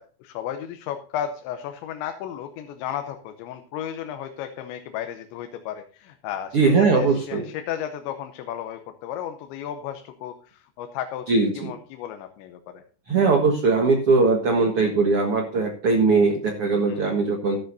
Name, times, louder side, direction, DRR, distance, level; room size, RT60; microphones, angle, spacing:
voice 1, 0.0-11.2 11.5-12.8 16.9-17.1, left 10 dB, 85° left, 7 dB, 3.3 m, -34 dB
voice 2, 6.5-7.5 11.3-11.7 13.1-17.6, right 4 dB, 60° right, 3 dB, 1.4 m, -20 dB
13.5 x 13.0 x 2.7 m, 0.42 s
omnidirectional pair, 5.1 m